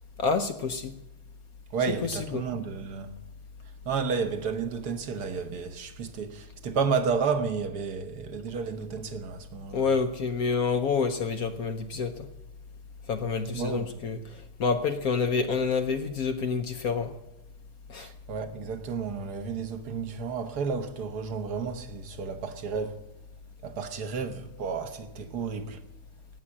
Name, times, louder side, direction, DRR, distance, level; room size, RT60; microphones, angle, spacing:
voice 1, 0.2-0.9 2.0-2.4 9.7-12.3 13.1-17.1 17.9-18.1, left 5 dB, 65° left, 0.9 m, -28 dB
voice 2, 1.7-3.1 3.8-9.8 13.5-14.0 18.0-23.0 23.6-25.8, right 5 dB, 50° right, 1.5 m, -32 dB
17.5 x 7.4 x 9.7 m
omnidirectional pair, 2.4 m